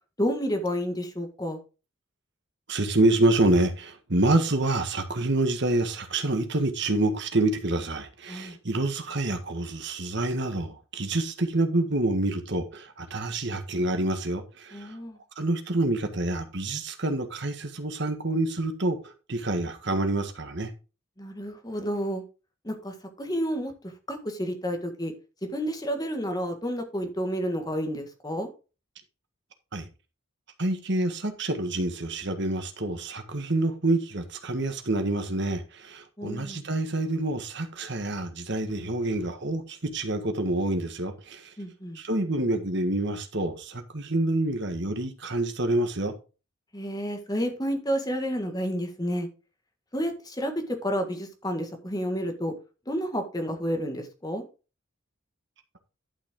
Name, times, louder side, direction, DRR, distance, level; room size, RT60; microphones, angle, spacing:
voice 1, 0.2-1.6 8.3-8.6 14.7-15.2 21.2-22.2 22.6-23.7 24.1-25.1 25.5-28.5 36.2-36.6 41.6-42.0 46.7-49.3 49.9-52.5 52.9-54.4, equal, 20° left, 1.7 m, -30 dB
voice 2, 2.7-15.0 15.4-20.7 29.7-29.9 30.6-41.5 41.9-46.1, right 2 dB, 55° right, 1.6 m, -27 dB
11.5 x 6.0 x 3.7 m
head